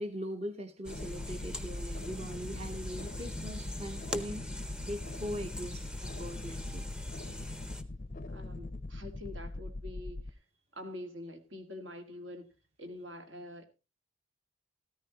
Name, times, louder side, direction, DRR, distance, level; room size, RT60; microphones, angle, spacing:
voice 1, 0.0-4.5 4.8-6.8, equal, 30° right, 0.8 m, -40 dB
sound 1, 0.8-7.8, left 1 dB, 5° right, 0.6 m, -43 dB
sound 2, 0.9-10.3, left 2 dB, 40° left, 0.5 m, -41 dB
voice 2, 8.3-10.4 10.7-12.5 12.8-13.7, left 1 dB, 70° right, 1.9 m, -45 dB
14.0 x 13.0 x 2.9 m
head